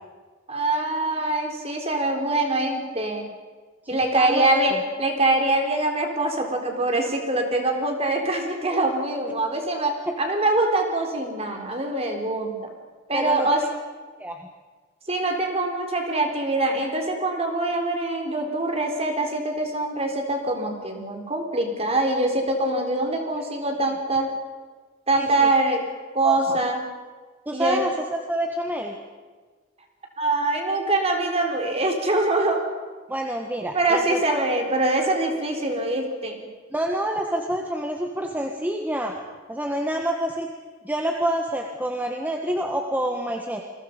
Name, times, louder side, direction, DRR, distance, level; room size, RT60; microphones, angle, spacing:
voice 1, 0.5-3.3 3.9-12.6 13.1-13.6 15.1-24.3 25.1-25.9 26.1-26.8 27.5-27.8 30.2-32.6 33.7-36.4, right 2 dB, 30° right, 3 dB, 3.8 m, -24 dB
voice 2, 3.8-4.8 10.1-10.2 13.1-13.7 14.2-14.4 25.2-25.3 25.7-25.8 26.2-26.6 27.5-28.9 33.1-34.4 36.7-39.1 39.5-40.5 40.8-43.6, right 1 dB, 10° right, 2 dB, 1.6 m, -27 dB
29.0 x 22.0 x 5.3 m, 1.4 s
head